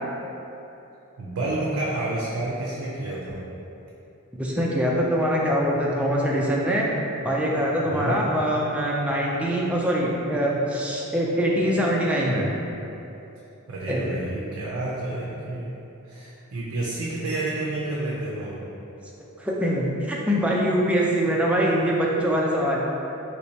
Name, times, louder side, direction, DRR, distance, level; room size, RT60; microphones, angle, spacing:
voice 1, 1.2-3.5 7.8-8.2 13.7-15.8 16.1-18.6, right 2 dB, 70° right, -5 dB, 0.4 m, -30 dB
voice 2, 4.3-6.9 7.2-12.5 13.9-14.1 19.4-22.8, equal, 5° right, -4 dB, 0.3 m, -23 dB
3.2 x 3.0 x 2.7 m, 3.0 s
head